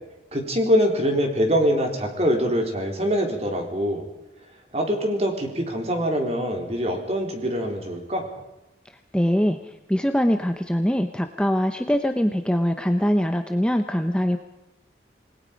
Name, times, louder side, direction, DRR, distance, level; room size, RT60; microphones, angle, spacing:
voice 1, 0.3-4.0 4.7-8.3, equal, 35° right, 3 dB, 4.0 m, -24 dB
voice 2, 9.1-14.4, equal, 5° left, 6 dB, 0.8 m, -23 dB
28.0 x 20.0 x 5.3 m, 0.97 s
head